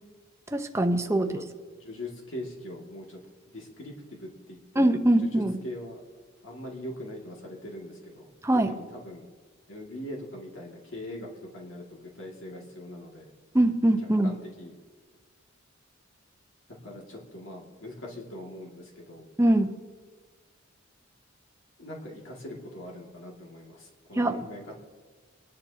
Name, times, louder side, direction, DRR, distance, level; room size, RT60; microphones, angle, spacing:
voice 1, 0.5-1.4 4.8-5.6 8.4-8.7 13.5-14.3 19.4-19.7 24.2-24.3, right 1 dB, 15° right, 6 dB, 0.9 m, -22 dB
voice 2, 1.8-3.2 3.5-4.9 5.2-5.3 5.6-6.0 6.4-8.3 8.6-9.3 9.7-13.3 14.0-14.7 16.8-19.3 21.8-24.7, left 1 dB, 70° left, -2 dB, 2.4 m, -41 dB
24.0 x 11.0 x 2.9 m, 1.5 s
head